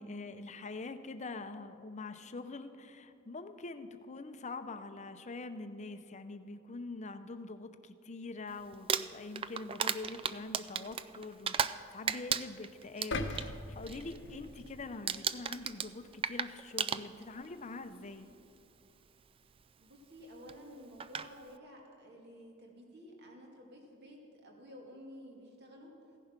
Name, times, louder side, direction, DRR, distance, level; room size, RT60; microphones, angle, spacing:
voice 1, 0.0-18.3, left 3 dB, 35° left, 10 dB, 0.7 m, -44 dB
Crumpling crinkling, 8.7-11.8 12.1-13.5 13.8-14.2 14.4-14.8 15.1-17.5 18.4-18.5 20.5-20.6 21.0-21.3, right 7 dB, 25° right, 0.3 m, -34 dB
sound 1, 13.1-15.3 15.7-15.9, left 2 dB, 60° left, 0.9 m, -40 dB
voice 2, 19.8-25.9, equal, 55° right, 0 dB, 2.3 m, -52 dB
16.0 x 10.5 x 5.9 m, 2.7 s
head